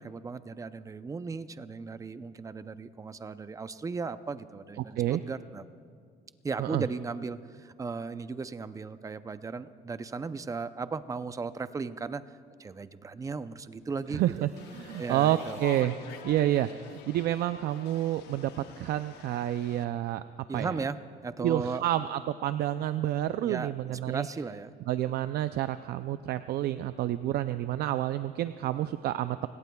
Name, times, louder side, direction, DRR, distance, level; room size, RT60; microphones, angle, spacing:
voice 1, 0.0-5.6 6.4-12.2 12.6-14.5 15.0-15.6 20.5-21.9 23.4-24.8, right 4 dB, 20° right, 13 dB, 0.5 m, -36 dB
voice 2, 4.8-5.2 6.6-6.8 14.1-16.0 16.2-20.2 20.5-20.8 21.4-24.3 24.9-29.5, right 13 dB, 70° right, 11 dB, 0.4 m, -29 dB
sound 1, 13.8-15.8 16.1-16.2 16.5-16.6 16.9-17.0 17.3-17.4 17.7-17.8 18.1-18.2 18.5-18.6 18.9-19.0, right 4 dB, 45° right, 2.0 m, -52 dB
sound 2, 14.6-19.8, left 9 dB, 80° left, 1.0 m, -47 dB
29.5 x 17.5 x 2.3 m, 2.2 s
cardioid pair, 110°, 17 cm